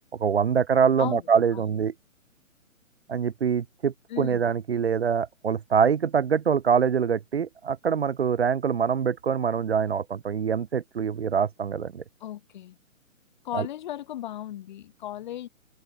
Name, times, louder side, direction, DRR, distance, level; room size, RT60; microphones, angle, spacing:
voice 1, 0.2-1.9 3.1-12.0 13.5-13.7, right 7 dB, 50° right, 1.3 m, -24 dB
voice 2, 4.1-4.4 12.2-12.8 13.4-15.5, left 12 dB, 35° left, 6.8 m, -36 dB
open air
figure-of-eight pair, 135°, 41 cm